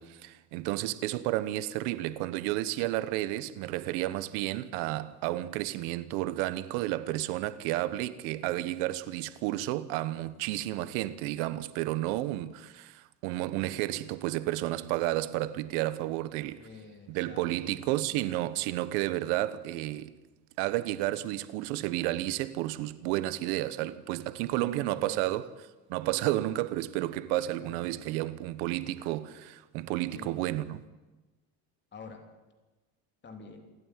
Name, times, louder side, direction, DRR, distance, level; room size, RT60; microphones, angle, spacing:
voice 1, 0.0-16.6 17.1-20.1 20.6-25.5 25.9-30.8, right 16 dB, 85° right, 1.2 m, -31 dB
voice 2, 16.5-18.2 24.4-25.3 27.6-28.1 30.2-30.4 31.9-32.2 33.2-33.6, left 4 dB, 25° left, 3.3 m, -49 dB
28.0 x 9.4 x 10.0 m
cardioid pair, 150°, 43 cm